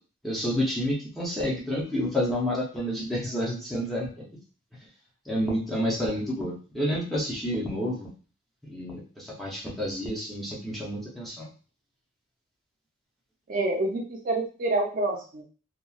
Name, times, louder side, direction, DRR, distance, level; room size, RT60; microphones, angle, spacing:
voice 1, 0.2-4.2 5.3-8.1 8.7-11.5, equal, ahead, -6 dB, 0.6 m, -29 dB
voice 2, 13.5-15.4, right 2 dB, 40° right, 2 dB, 0.5 m, -27 dB
2.9 x 2.3 x 2.3 m, 0.37 s
head